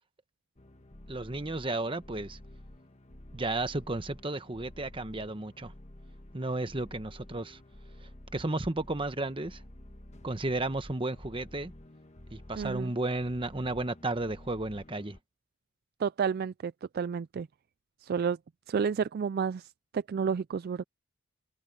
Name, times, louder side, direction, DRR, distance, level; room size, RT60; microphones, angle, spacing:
sound 1, 0.6-15.2, left 1 dB, 30° left, 1.3 m, -51 dB
voice 1, 1.1-2.4 3.3-5.7 6.3-7.6 8.0-9.6 10.2-11.7 12.3-15.2, right 2 dB, 25° right, 1.1 m, -33 dB
voice 2, 12.6-12.9 16.0-17.5 18.0-18.4 18.7-20.8, right 6 dB, 45° right, 0.3 m, -31 dB
head